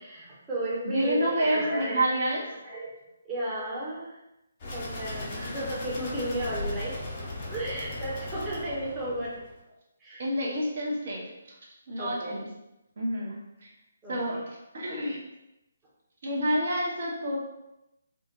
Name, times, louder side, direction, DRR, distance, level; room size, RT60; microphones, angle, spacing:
voice 1, 0.0-2.1 2.6-2.9 3.3-4.1 4.7-6.9 7.2-9.3 10.0-10.2 12.0-12.4 14.0-14.4, right 1 dB, 15° right, -7 dB, 0.7 m, -33 dB
voice 2, 0.8-2.4 10.2-11.2 11.9-12.5 13.0-13.7 14.1-14.4 14.7-15.2 16.2-17.4, equal, 50° right, -3 dB, 0.7 m, -28 dB
sound 1, 4.6-9.6, left 2 dB, 30° left, 0.6 m, -37 dB
2.2 x 2.0 x 2.7 m, 0.92 s
figure-of-eight pair, 140°, 0 cm